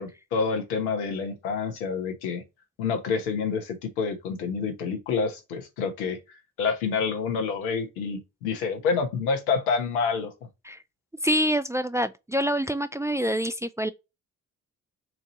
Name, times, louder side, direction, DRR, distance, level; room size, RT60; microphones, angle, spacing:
voice 1, 0.0-2.4 2.8-6.2 6.6-10.3, left 5 dB, 85° left, 1.2 m, -28 dB
voice 2, 11.2-13.9, equal, 5° right, 0.4 m, -26 dB
4.7 x 2.7 x 4.2 m
hypercardioid pair, 45°, 42 cm